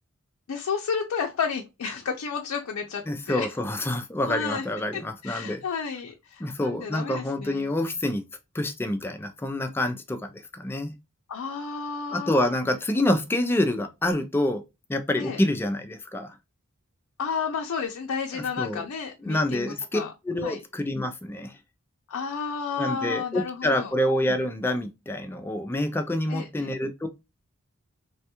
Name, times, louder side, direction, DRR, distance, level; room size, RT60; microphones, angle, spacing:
voice 1, 0.5-3.5 4.3-4.7 4.9-7.6 11.3-12.5 15.1-15.4 17.2-20.1 20.4-20.6 22.1-23.9 26.3-26.7, left 6 dB, 80° left, 0.4 m, -32 dB
voice 2, 3.1-5.6 6.4-8.2 8.5-10.9 12.1-14.6 14.9-16.3 18.3-18.9 19.2-21.5 22.8-27.1, left 1 dB, 10° left, 0.3 m, -27 dB
3.3 x 2.3 x 2.8 m
head